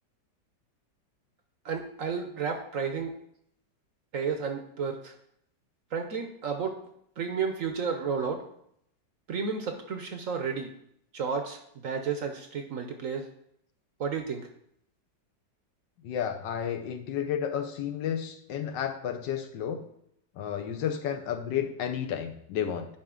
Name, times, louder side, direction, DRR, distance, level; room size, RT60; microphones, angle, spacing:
voice 1, 1.6-3.1 4.1-5.1 5.9-6.8 7.2-8.4 9.3-10.7 11.1-13.3 14.0-14.5, right 6 dB, 60° right, 6 dB, 1.0 m, -32 dB
voice 2, 16.0-19.8 20.3-22.9, left 8 dB, 80° left, 5 dB, 1.5 m, -32 dB
10.0 x 5.2 x 3.7 m, 0.72 s
omnidirectional pair, 1.9 m